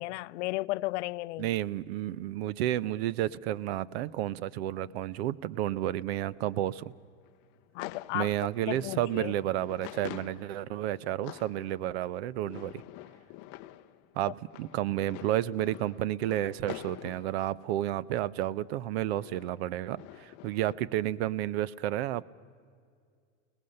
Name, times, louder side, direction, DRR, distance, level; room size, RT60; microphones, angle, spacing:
voice 1, 0.0-1.5 7.7-8.3 8.7-9.3, left 20 dB, 75° left, 0.6 m, -34 dB
voice 2, 1.4-6.9 8.1-12.8 14.2-22.2, right 13 dB, 60° right, 0.7 m, -31 dB
sound 1, 6.8-18.2 18.9-20.7, left 16 dB, 30° left, 0.6 m, -48 dB
30.0 x 19.0 x 6.6 m
supercardioid pair, 180°, 36 cm